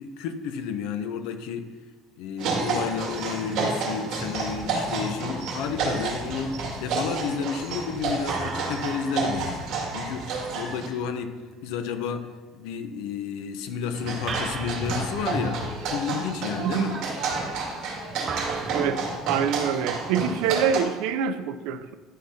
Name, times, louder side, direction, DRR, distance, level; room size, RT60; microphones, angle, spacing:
voice 1, 0.0-1.7 2.2-11.4 11.6-17.0, left 6 dB, 80° left, 8 dB, 0.9 m, -31 dB
sound 1, 2.4-10.9 13.9-20.8, right 3 dB, 55° right, 2.3 m, -30 dB
sound 2, 2.8-4.6 8.3-11.5 14.3-16.5 18.3-19.1, right 4 dB, 30° right, 0.9 m, -37 dB
voice 2, 16.6-16.9 18.7-21.9, right 8 dB, 80° right, 11 dB, 0.6 m, -26 dB
11.5 x 4.0 x 5.8 m, 1.3 s
cardioid pair, 170°, 0 cm